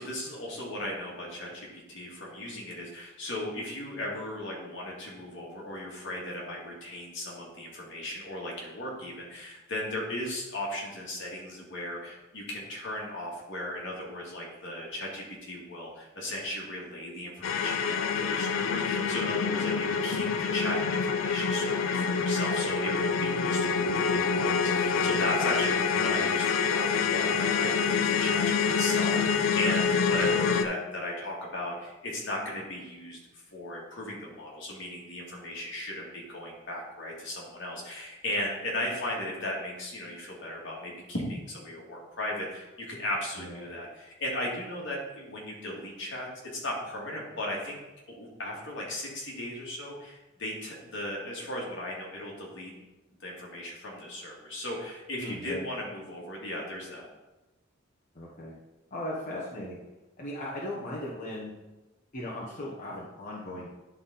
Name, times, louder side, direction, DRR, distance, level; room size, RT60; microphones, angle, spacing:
voice 1, 0.0-47.8 48.1-52.7 53.2-57.1, left 1 dB, 65° left, -3 dB, 2.2 m, -36 dB
sound 1, 17.4-30.7, left 5 dB, 80° left, 0.5 m, -26 dB
voice 2, 25.9-26.3 43.4-43.7 55.2-55.6 58.1-58.5 58.9-59.8 60.2-61.5 62.1-63.7, left 1 dB, 40° left, -6 dB, 1.2 m, -37 dB
10.5 x 4.1 x 3.9 m, 1.1 s
head